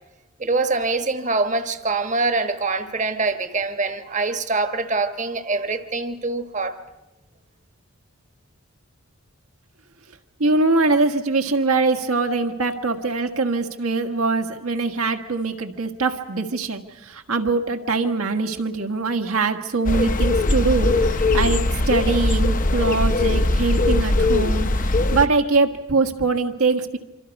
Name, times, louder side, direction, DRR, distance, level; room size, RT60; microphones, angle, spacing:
voice 1, 0.4-6.8, right 3 dB, 35° right, 8 dB, 1.2 m, -24 dB
voice 2, 10.4-27.0, right 3 dB, 80° right, 5 dB, 1.6 m, -23 dB
sound 1, 19.8-25.3, left 2 dB, 40° left, 0.8 m, -20 dB
26.5 x 25.5 x 5.4 m, 1.1 s
head